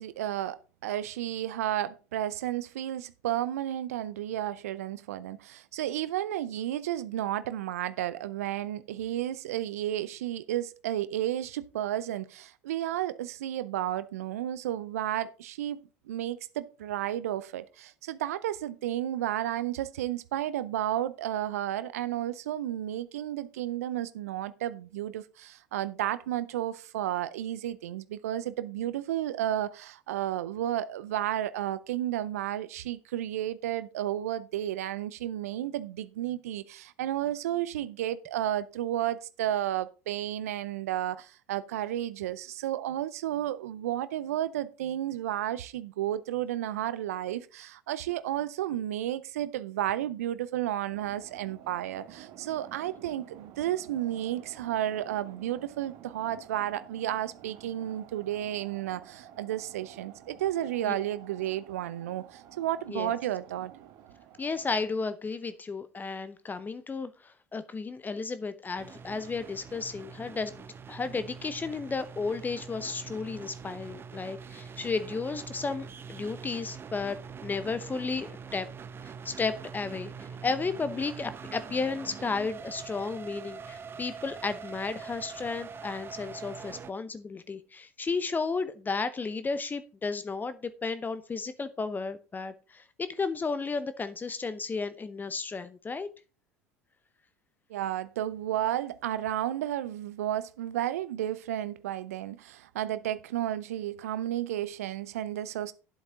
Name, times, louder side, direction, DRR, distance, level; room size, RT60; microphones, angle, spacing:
voice 1, 0.0-63.7 97.7-105.7, right 12 dB, 75° right, 0.5 m, -32 dB
sound 1, 50.9-65.0, right 10 dB, 60° right, 1.5 m, -51 dB
voice 2, 64.4-78.7 79.0-96.1, left 4 dB, 20° left, 0.8 m, -33 dB
sound 2, 68.8-86.9, right 6 dB, 30° right, 0.7 m, -44 dB
10.5 x 8.0 x 3.7 m
hypercardioid pair, 70°, 8 cm